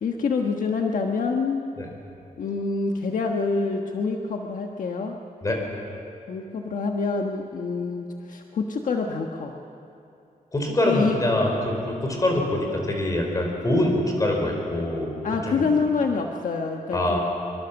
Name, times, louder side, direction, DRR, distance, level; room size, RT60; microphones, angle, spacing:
voice 1, 0.0-1.6 2.4-5.2 6.3-9.5 10.9-11.2 15.2-17.2, left 4 dB, 65° left, 2 dB, 1.3 m, -26 dB
voice 2, 10.5-15.1 15.4-15.7 16.9-17.2, left 1 dB, 25° left, 1 dB, 4.5 m, -24 dB
24.0 x 24.0 x 7.1 m, 2.7 s
wide cardioid pair, 170°, 15 cm